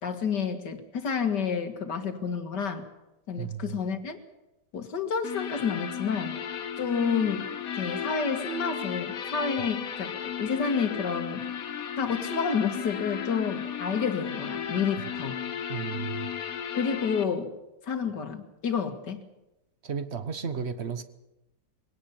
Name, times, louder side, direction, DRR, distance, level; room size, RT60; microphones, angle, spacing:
voice 1, 0.0-2.8 3.3-4.2 4.7-6.4 6.8-7.5 7.7-11.4 12.0-15.4 16.7-17.5 17.8-19.2, left 6 dB, 80° left, 6 dB, 2.5 m, -29 dB
voice 2, 3.4-3.8 15.7-16.3 19.8-21.0, right 6 dB, 45° right, 11 dB, 1.3 m, -34 dB
sound 1, 5.2-17.2, left 8 dB, 60° left, 1.5 m, -35 dB
21.5 x 18.0 x 7.1 m, 0.95 s
omnidirectional pair, 1.8 m